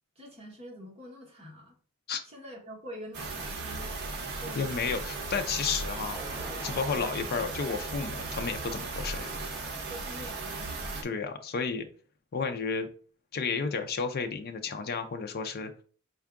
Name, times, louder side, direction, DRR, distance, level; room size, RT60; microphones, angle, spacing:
voice 1, 0.2-1.8 2.3-5.2 6.9-7.2 9.9-11.2, equal, 30° right, -1 dB, 1.2 m, -46 dB
sound 1, 3.1-11.0, right 3 dB, 50° right, 0.8 m, -36 dB
voice 2, 4.6-6.2 6.6-9.3 11.0-11.9 12.3-12.9 13.3-15.7, left 5 dB, 45° left, 6 dB, 0.4 m, -32 dB
sound 2, 6.1-7.2 7.7-8.7 9.3-9.7, right 1 dB, 10° right, 0.5 m, -46 dB
4.5 x 2.3 x 3.5 m, 0.41 s
head